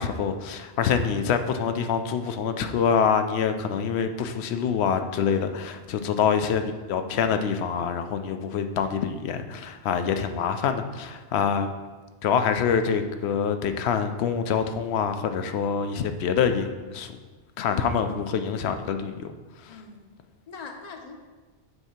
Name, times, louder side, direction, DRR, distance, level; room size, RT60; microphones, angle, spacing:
voice 1, 0.0-11.7 12.2-17.1 17.6-19.3 19.6-19.8, left 7 dB, 70° left, 8 dB, 0.8 m, -25 dB
voice 2, 19.7-20.0 20.5-21.2, left 3 dB, 40° left, 3 dB, 0.7 m, -41 dB
7.9 x 2.7 x 5.7 m, 1.3 s
omnidirectional pair, 1.2 m